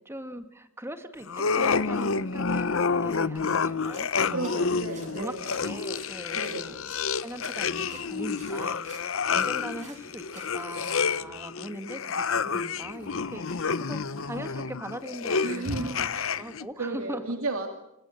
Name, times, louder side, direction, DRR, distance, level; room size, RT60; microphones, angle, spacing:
voice 1, 0.1-1.3 1.5-6.8 7.2-10.3 10.5-16.1 16.4-17.2, right 1 dB, 10° right, 8 dB, 1.9 m, -40 dB
sound 1, 1.3-16.7, left 5 dB, 70° left, 0.8 m, -29 dB
sound 2, 3.9-11.0, right 4 dB, 35° right, 8.0 m, -52 dB
voice 2, 4.3-5.5 6.3-6.7 15.4-16.4 16.8-17.7, right 2 dB, 80° right, 5 dB, 2.5 m, -33 dB
27.5 x 25.5 x 6.6 m, 0.85 s
head